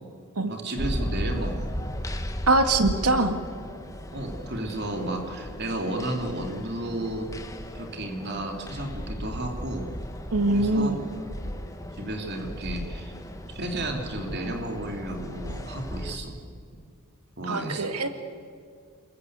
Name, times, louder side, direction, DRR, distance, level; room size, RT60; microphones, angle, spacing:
voice 1, 0.5-1.7 4.1-7.3 7.7-9.8 10.5-11.0 12.0-13.1 13.4-16.3 17.4-17.9, right 1 dB, 50° right, 3 dB, 3.1 m, -33 dB
sound 1, 0.8-16.2, equal, 15° left, 1.6 m, -36 dB
voice 2, 2.5-3.4 10.3-11.0 17.5-18.1, right 2 dB, 90° right, 7 dB, 1.9 m, -23 dB
28.0 x 22.0 x 8.2 m, 2.2 s
head